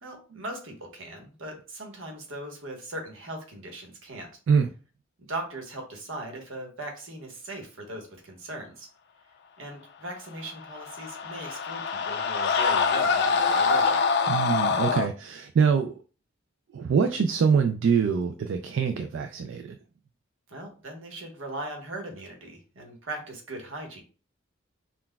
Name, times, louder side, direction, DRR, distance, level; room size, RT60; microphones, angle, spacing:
voice 1, 0.0-4.4 5.2-8.9 9.6-14.0 20.5-24.0, right 1 dB, 85° right, 1.1 m, -39 dB
sound 1, 10.6-15.1, left 5 dB, 55° left, 0.4 m, -25 dB
voice 2, 14.3-15.9 16.7-19.8, right 6 dB, 70° right, 0.3 m, -24 dB
5.8 x 2.3 x 2.2 m
head